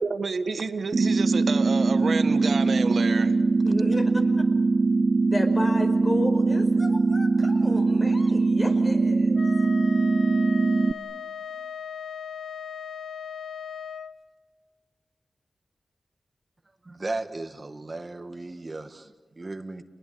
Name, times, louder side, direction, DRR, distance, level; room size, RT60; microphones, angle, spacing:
voice 1, 0.0-3.3, right 4 dB, 70° right, 1.4 m, -29 dB
sound 1, 0.9-10.9, right 3 dB, 55° right, 0.7 m, -22 dB
voice 2, 3.6-4.1 5.3-9.4, left 2 dB, 40° left, 5.1 m, -33 dB
Wind instrument woodwind instrument, 9.3-14.2, left 7 dB, 90° left, 0.8 m, -38 dB
voice 3, 16.9-19.8, right 2 dB, 40° right, 1.7 m, -36 dB
29.5 x 21.0 x 8.7 m
cardioid pair, 45°, 0 cm